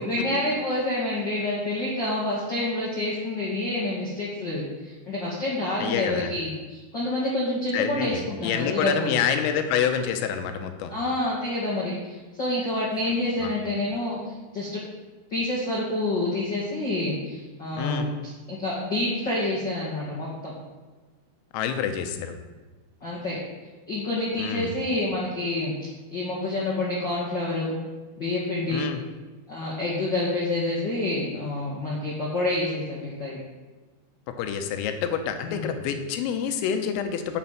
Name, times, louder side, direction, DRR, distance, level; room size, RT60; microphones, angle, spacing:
voice 1, 0.0-9.1 10.9-14.8 15.3-20.5 23.0-23.4 23.9-27.7 28.2-28.9 29.5-33.4 35.4-35.7, left 2 dB, 45° left, -7 dB, 1.5 m, -28 dB
voice 2, 5.8-6.3 7.7-10.9 13.4-13.5 17.7-18.1 21.5-22.3 24.4-24.7 28.7-29.0 34.4-37.4, left 7 dB, 85° left, 6 dB, 3.6 m, -27 dB
9.6 x 8.7 x 5.9 m, 1.3 s
omnidirectional pair, 5.9 m